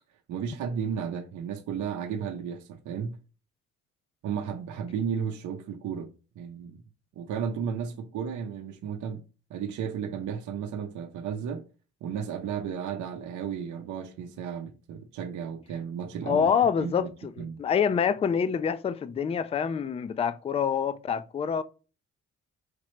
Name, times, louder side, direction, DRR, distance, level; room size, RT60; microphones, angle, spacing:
voice 1, 0.3-3.2 4.2-6.1 6.4-6.8 7.2-9.2 9.5-11.6 12.0-16.5 16.8-17.1 17.4-17.6, right 7 dB, 75° right, 0.7 m, -33 dB
voice 2, 16.3-21.6, left 7 dB, 20° left, 0.3 m, -26 dB
5.0 x 3.2 x 3.1 m
cardioid pair, 90°, 30 cm